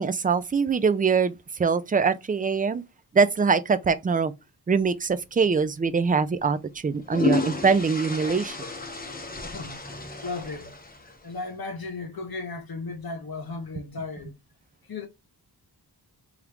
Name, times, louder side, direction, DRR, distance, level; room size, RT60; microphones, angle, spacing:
voice 1, 0.0-1.3 1.6-2.8 3.1-4.3 4.7-6.6 6.8-8.6, right 5 dB, 25° right, 0.3 m, -23 dB
sound 1, 5.4-5.6 6.7-11.4, left 3 dB, 20° left, 0.8 m, -32 dB
voice 2, 9.4-9.8 10.2-10.7 11.0-14.4 14.9-15.1, left 3 dB, 60° left, 0.8 m, -35 dB
3.0 x 2.4 x 3.3 m
cardioid pair, 60°, 41 cm